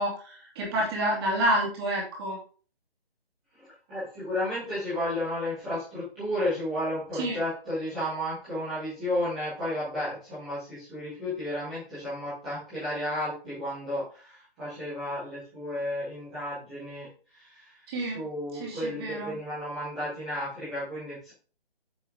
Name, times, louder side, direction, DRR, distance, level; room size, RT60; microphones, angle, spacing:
voice 1, 0.0-2.4 7.1-7.4 17.9-18.3 18.5-19.4, right 1 dB, 25° right, -3 dB, 2.6 m, -29 dB
voice 2, 3.6-17.1 17.3-17.7 18.1-21.3, left 1 dB, ahead, -17 dB, 0.5 m, -33 dB
9.1 x 5.4 x 3.6 m, 0.39 s
figure-of-eight pair, 150°, 31 cm